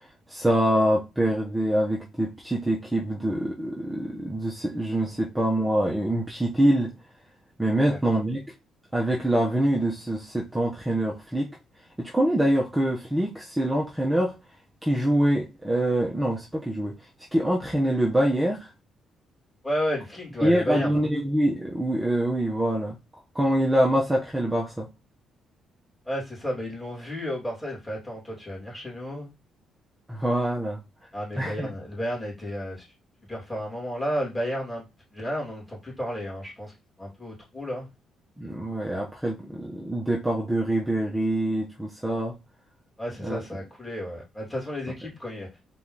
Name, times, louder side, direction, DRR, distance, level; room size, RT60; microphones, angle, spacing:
voice 1, 0.3-6.9 7.6-8.4 8.9-11.5 12.0-14.3 14.8-16.9 17.3-18.7 20.4-23.0 23.3-24.9 30.1-30.8 31.4-31.7 38.4-42.3 43.2-43.4, right 1 dB, 10° right, 0.9 m, -25 dB
voice 2, 19.6-21.0 26.0-29.3 31.1-32.9 33.2-34.8 35.1-36.7 37.0-37.9 43.0-45.5, equal, 15° left, 2.9 m, -32 dB
4.2 x 3.0 x 3.9 m
cardioid pair, 90°, 0 cm